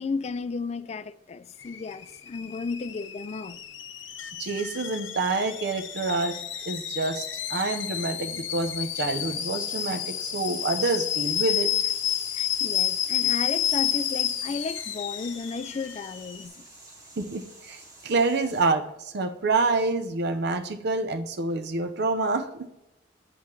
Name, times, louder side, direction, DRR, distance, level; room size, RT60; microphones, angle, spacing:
voice 1, 0.0-3.6 12.3-16.6, left 4 dB, 35° left, 0.4 m, -34 dB
Alarm / Boiling, 1.6-16.4, left 10 dB, 80° left, 0.8 m, -30 dB
voice 2, 4.4-6.4 6.7-11.7 17.2-22.7, right 3 dB, 60° right, 0.6 m, -27 dB
sound 1, 8.9-18.7, right 2 dB, 20° right, 2.3 m, -50 dB
8.9 x 8.5 x 3.1 m
head